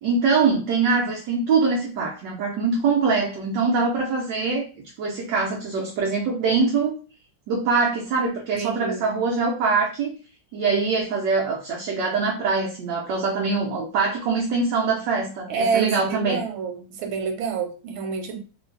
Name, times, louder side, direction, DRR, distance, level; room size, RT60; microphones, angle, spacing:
voice 1, 0.0-4.7 5.0-6.9 7.5-10.1 10.5-16.4, right 4 dB, 70° right, -2 dB, 1.2 m, -23 dB
voice 2, 8.5-9.1 15.5-18.4, right 5 dB, 90° right, 4 dB, 1.5 m, -27 dB
3.2 x 2.6 x 3.2 m, 0.36 s
omnidirectional pair, 2.2 m